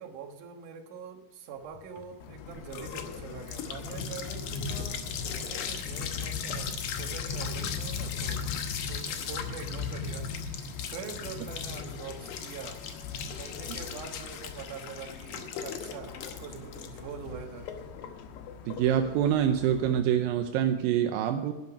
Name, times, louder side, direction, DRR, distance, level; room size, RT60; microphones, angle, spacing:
voice 1, 0.0-12.8 13.3-17.7, right 6 dB, 60° right, 4 dB, 2.5 m, -44 dB
sound 1, 1.7-20.8, left 8 dB, 70° left, 1.9 m, -39 dB
sound 2, 2.2-20.0, left 5 dB, 90° left, 3.1 m, -40 dB
voice 2, 18.7-21.5, right 9 dB, 80° right, 6 dB, 2.1 m, -26 dB
12.0 x 9.6 x 5.8 m, 1.2 s
omnidirectional pair, 4.8 m